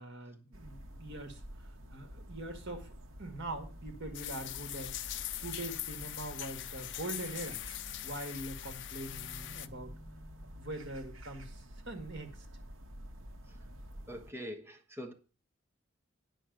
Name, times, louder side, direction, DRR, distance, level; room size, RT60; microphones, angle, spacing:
voice 1, 0.0-2.9 3.2-5.0 5.4-7.6 8.0-9.9 10.6-12.5, right 1 dB, 60° right, 2.0 m, -43 dB
sound 1, 0.5-14.3, equal, 80° right, 1.1 m, -49 dB
sound 2, 4.1-9.7, left 13 dB, 60° left, 0.5 m, -41 dB
sound 3, 5.0-11.0, equal, 35° right, 2.9 m, -59 dB
voice 2, 14.1-15.1, equal, 10° right, 1.3 m, -43 dB
9.0 x 5.8 x 6.5 m
head